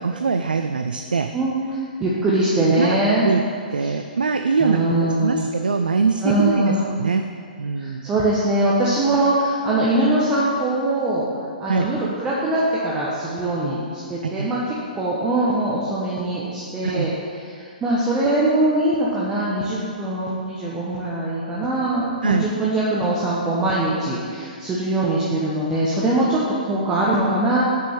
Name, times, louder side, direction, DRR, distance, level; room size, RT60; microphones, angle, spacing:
voice 1, 0.0-1.3 2.8-3.0 3.2-3.4 3.7-7.3 7.6-8.1 11.7-11.9 14.2-14.5 16.8-17.1 22.2-22.5, right 4 dB, 70° right, 7 dB, 0.4 m, -23 dB
voice 2, 2.0-3.3 3.8-3.9 4.6-5.5 6.2-6.8 7.8-11.3 11.6-14.6 14.9-17.1 17.5-27.6, right 1 dB, 15° right, -6 dB, 1.0 m, -22 dB
6.5 x 5.2 x 6.4 m, 2.2 s
figure-of-eight pair, 120°, 5 cm